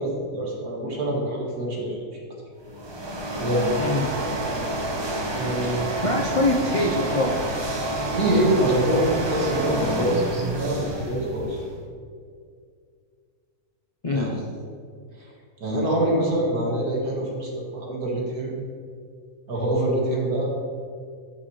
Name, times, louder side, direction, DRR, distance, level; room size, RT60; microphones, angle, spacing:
voice 1, 0.0-2.0 3.4-3.8 5.3-5.8 7.9-11.6 14.1-14.4 15.6-18.5 19.5-20.5, right 1 dB, 75° right, -3 dB, 2.1 m, -25 dB
sound 1, 2.6-11.8, right 1 dB, 30° right, 0.4 m, -28 dB
voice 2, 3.8-4.1 6.0-7.5 14.0-14.4, left 2 dB, 60° left, 0 dB, 0.3 m, -24 dB
11.0 x 6.4 x 3.1 m, 2.2 s
omnidirectional pair, 1.6 m